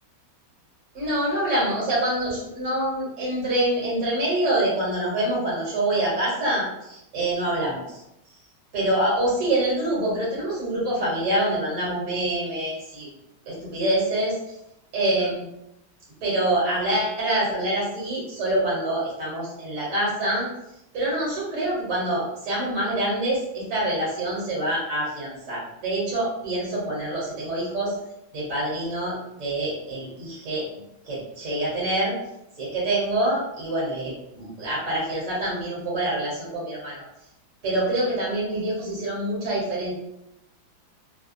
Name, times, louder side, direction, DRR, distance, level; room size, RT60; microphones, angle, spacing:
voice 1, 0.9-8.0 8.7-13.1 13.4-14.4 14.9-15.4 16.2-20.5 20.9-27.9 28.3-30.6 31.0-32.1 32.6-37.0 37.6-39.9, right 1 dB, 45° right, -6 dB, 1.3 m, -26 dB
3.3 x 2.2 x 2.5 m, 0.84 s
omnidirectional pair, 2.2 m